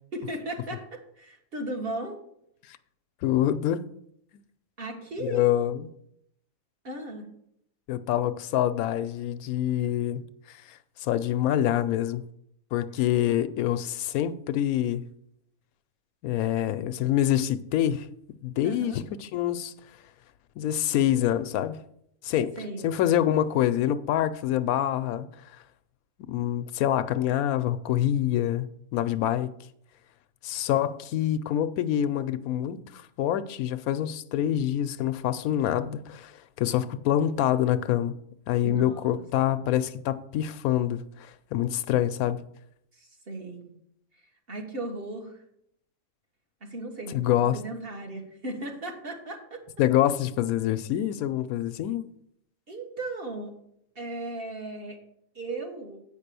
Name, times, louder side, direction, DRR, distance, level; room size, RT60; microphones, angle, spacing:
voice 1, 0.1-2.2 4.8-5.5 6.8-7.3 18.6-19.0 22.6-22.9 38.6-39.6 42.9-43.7 44.1-45.4 46.6-49.6 52.7-53.5 53.9-55.0 55.3-56.0, right 2 dB, 45° right, 1.6 m, -36 dB
voice 2, 3.2-3.8 5.2-5.9 7.9-12.2 12.7-15.0 16.2-18.1 18.4-19.7 20.6-21.8 22.2-22.6 22.8-25.6 26.3-29.5 30.4-38.1 38.5-42.4 47.1-47.6 49.8-52.1, left 11 dB, 85° left, 1.0 m, -26 dB
8.4 x 5.4 x 6.8 m
omnidirectional pair, 1.5 m